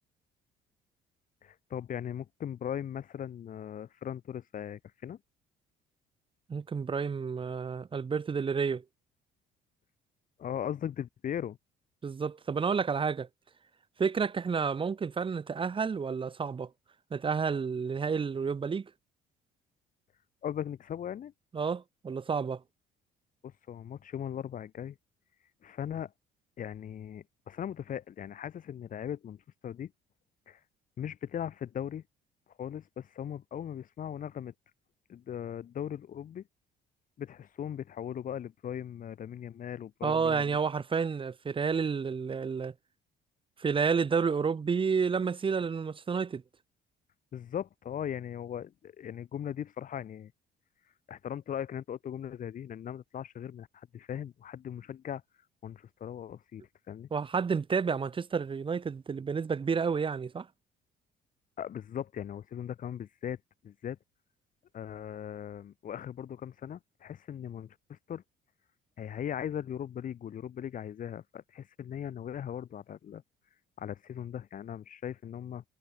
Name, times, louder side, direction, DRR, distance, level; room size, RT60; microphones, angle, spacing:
voice 1, 1.4-5.2 10.4-11.6 20.4-21.3 23.4-25.0 25.6-26.1 26.6-29.9 30.5-30.6 31.0-32.0 32.6-34.5 35.1-36.4 37.2-40.6 47.3-50.3 51.1-55.2 55.6-57.1 61.6-63.4 63.6-64.0 64.7-68.2 69.0-73.2 73.8-75.6, left 9 dB, 50° left, 7.6 m, -39 dB
voice 2, 6.5-8.8 12.0-13.3 14.0-16.7 17.1-18.9 21.5-22.6 40.0-42.7 43.6-46.4 57.1-60.5, right 5 dB, 30° right, 2.5 m, -30 dB
cardioid pair, 110°, 17 cm